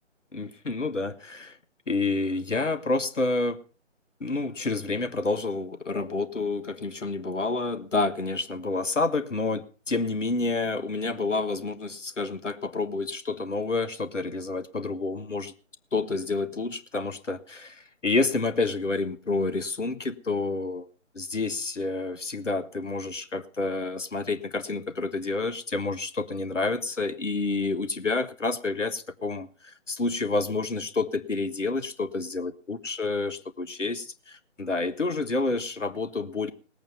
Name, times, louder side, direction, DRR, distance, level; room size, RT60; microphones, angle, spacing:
voice 1, 0.3-1.6 1.9-3.6 4.2-15.5 15.9-20.9 21.1-36.5, left 3 dB, 75° left, 1.4 m, -29 dB
18.5 x 8.7 x 5.7 m
figure-of-eight pair, 145°, 38 cm